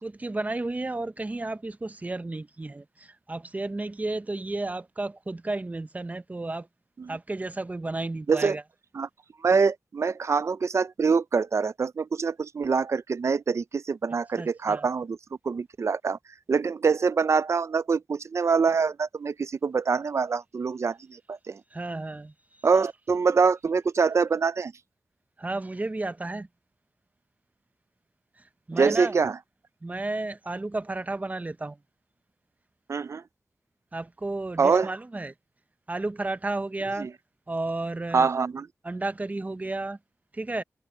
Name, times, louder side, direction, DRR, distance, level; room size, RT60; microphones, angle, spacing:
voice 1, 0.0-6.7 7.1-8.6 14.4-14.9 21.7-22.7 25.4-26.5 28.4-29.2 29.8-31.8 33.9-35.3 35.9-37.1 37.5-38.3 38.8-40.0 40.3-40.6, right 2 dB, 25° right, 0.8 m, -32 dB
voice 2, 9.4-15.2 15.4-16.2 16.5-21.6 22.6-24.7 28.8-29.4 32.9-33.2 34.6-34.9 37.0-37.1 38.1-38.7, right 5 dB, 50° right, 0.5 m, -25 dB
wide cardioid pair, 100°, 6 cm